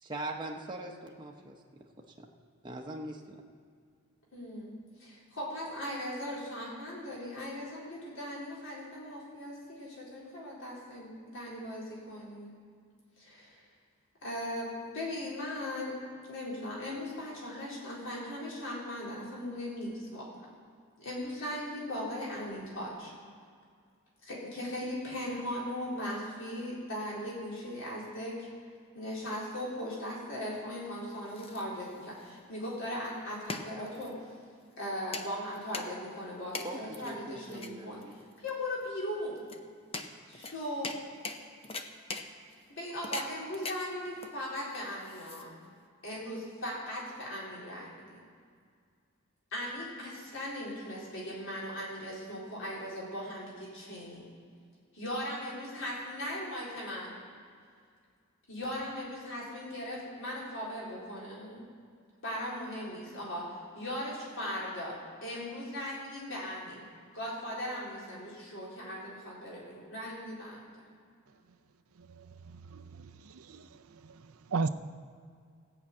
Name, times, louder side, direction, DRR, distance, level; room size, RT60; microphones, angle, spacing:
voice 1, 0.0-1.6 2.2-2.3 2.6-3.4 36.6-38.2, right 1 dB, 20° right, 0 dB, 0.9 m, -41 dB
voice 2, 4.3-12.5 13.2-13.6 14.2-15.9 16.2-20.3 21.0-23.1 24.2-28.5 28.9-34.1 34.8-38.0 38.4-39.4 40.3-40.9 42.8-45.6 46.0-48.0 49.5-54.3 54.9-57.1 58.5-61.6 62.2-66.8 67.1-70.6, left 1 dB, 65° left, -6 dB, 4.0 m, -38 dB
sound 1, 30.9-45.9, left 3 dB, 30° left, 0.7 m, -44 dB
voice 3, 71.9-74.7, right 4 dB, 85° right, 11 dB, 0.6 m, -37 dB
16.5 x 6.0 x 8.5 m, 2.1 s
head